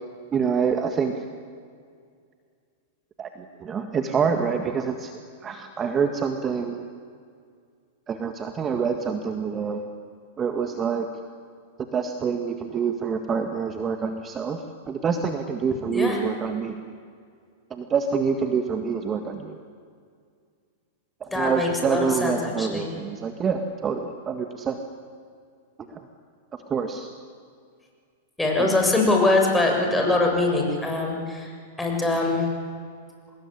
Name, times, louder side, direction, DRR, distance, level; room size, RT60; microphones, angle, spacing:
voice 1, 0.3-1.2 3.2-3.3 3.6-5.1 5.4-6.8 8.1-9.8 10.4-11.1 11.9-14.6 14.9-16.8 17.7-19.6 21.2-24.8 25.9-26.0 26.7-27.1 28.6-28.7, right 6 dB, 25° right, 6 dB, 1.8 m, -26 dB
voice 2, 21.3-22.9 28.4-31.5 31.8-32.5, left 2 dB, 5° left, 0 dB, 7.0 m, -23 dB
25.5 x 20.5 x 10.0 m, 2.2 s
hypercardioid pair, 110°, 0 cm